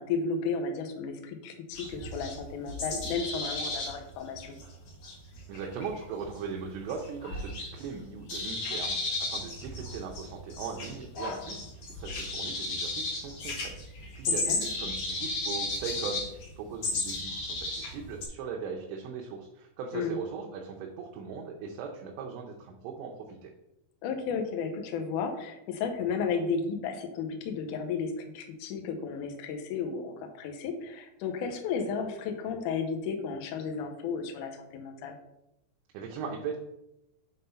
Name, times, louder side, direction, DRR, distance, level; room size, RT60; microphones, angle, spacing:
voice 1, 0.0-4.6 14.5-14.6 19.9-20.2 24.0-35.1, left 5 dB, 80° left, 4 dB, 1.8 m, -33 dB
sound 1, 1.7-8.0 8.3-18.3, left 2 dB, 55° left, 2.0 m, -34 dB
voice 2, 5.5-23.5 35.9-36.6, right 5 dB, 85° right, 0 dB, 3.0 m, -39 dB
7.3 x 3.7 x 5.6 m, 0.85 s
omnidirectional pair, 5.0 m